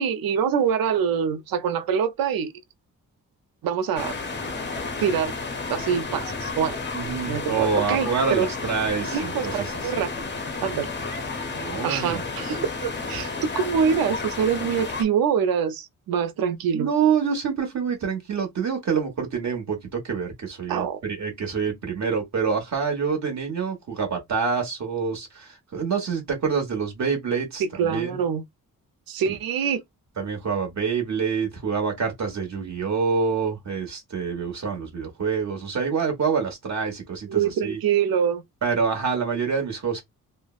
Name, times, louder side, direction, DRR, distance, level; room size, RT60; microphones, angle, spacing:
voice 1, 0.0-2.5 3.6-4.1 5.0-5.3 5.7-6.8 7.3-8.5 9.1-10.1 10.6-10.9 11.8-13.3 13.6-16.9 20.7-21.0 27.8-28.4 29.1-29.8 37.3-38.4, right 7 dB, 90° right, 0.5 m, -25 dB
sound 1, 4.0-15.0, left 3 dB, 30° left, 0.6 m, -32 dB
voice 2, 6.9-10.0 11.5-12.2 16.7-28.2 30.2-37.8 38.6-40.0, right 5 dB, 50° right, 1.1 m, -26 dB
3.1 x 2.1 x 2.3 m
wide cardioid pair, 125°, 34 cm